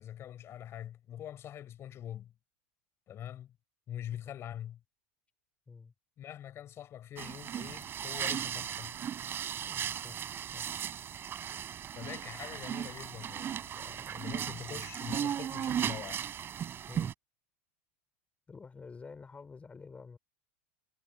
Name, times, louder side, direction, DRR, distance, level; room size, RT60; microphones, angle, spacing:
voice 1, 0.0-2.3 3.1-3.5 3.9-4.8 6.2-9.0 11.9-16.2, left 11 dB, 40° left, 5.4 m, -44 dB
sound 1, 7.2-17.1, right 9 dB, 35° right, 3.5 m, -36 dB
voice 2, 9.6-10.2 10.5-10.7 16.9-17.1 18.5-20.2, left 4 dB, 20° left, 4.5 m, -49 dB
hypercardioid pair, 100°, 7 cm